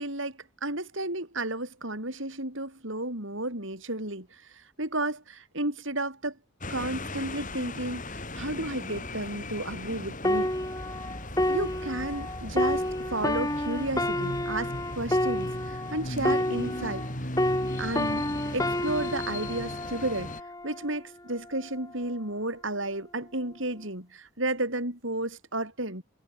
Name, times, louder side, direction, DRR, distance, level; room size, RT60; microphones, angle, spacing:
voice 1, 0.0-6.4 6.7-10.5 11.5-17.1 17.8-18.3 18.5-20.3 20.6-26.0, right 2 dB, 60° right, 7.1 m, -32 dB
sound 1, 6.6-20.4, left 1 dB, 35° left, 7.9 m, -38 dB
sound 2, 10.2-17.1 17.4-21.0 21.6-21.8, left 1 dB, 15° left, 6.2 m, -29 dB
head